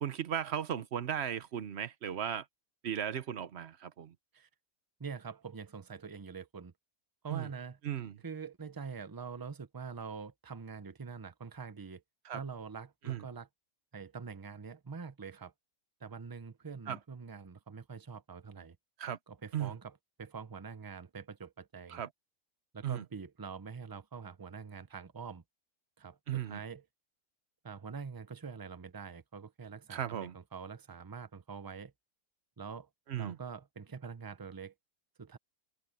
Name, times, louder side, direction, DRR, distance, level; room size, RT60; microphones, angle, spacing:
voice 1, 0.0-2.4 2.8-4.1 7.3-7.5 7.8-8.1 12.2-12.4 13.1-13.2 16.9-17.0 19.0-19.2 19.5-19.7 21.9-22.1 22.8-23.0 26.3-26.6 29.9-30.3 33.1-33.4, right 9 dB, 50° right, 1.0 m, -36 dB
voice 2, 5.0-6.7 7.2-7.8 8.2-12.0 12.3-13.5 13.9-15.5 16.0-18.8 19.3-22.0 22.7-25.4 26.0-26.8 27.6-31.9 32.6-32.9 33.2-34.7 35.2-35.4, right 5 dB, 30° right, 0.4 m, -45 dB
open air
omnidirectional pair, 1.6 m